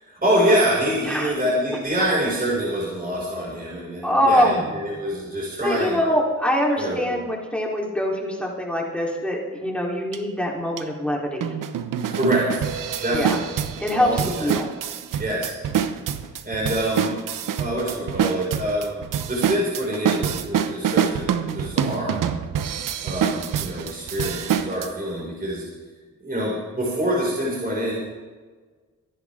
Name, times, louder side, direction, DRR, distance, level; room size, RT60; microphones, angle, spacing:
voice 1, 0.0-6.0 6.8-7.1 12.1-12.6 13.0-13.5 13.8-14.5 15.2-15.6 16.4-17.2 17.6-22.2 23.0-25.6 26.2-27.9, equal, 25° right, -5 dB, 5.9 m, -25 dB
voice 2, 4.0-4.7 5.6-11.5 13.1-13.4 13.8-14.7, equal, 5° left, -2 dB, 3.8 m, -23 dB
sound 1, 10.1-10.2 10.8-10.9 11.4-24.9, right 8 dB, 70° right, 1.0 m, -26 dB
24.5 x 11.0 x 3.8 m, 1.4 s
cardioid pair, 75°, 33 cm